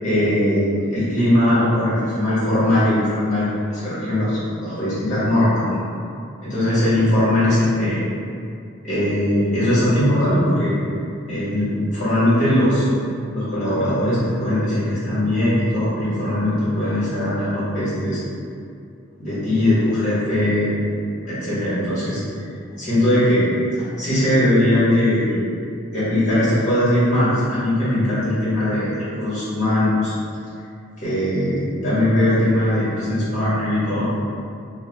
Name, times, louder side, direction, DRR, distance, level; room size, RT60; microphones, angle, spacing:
voice 1, 0.0-5.9 6.4-8.0 8.8-10.7 11.3-12.9 13.3-18.2 19.2-20.8 21.2-22.5 22.8-23.5 23.8-25.4 25.9-30.1 31.0-34.0, left 1 dB, 35° left, -11 dB, 1.3 m, -20 dB
2.8 x 2.2 x 2.9 m, 2.5 s
head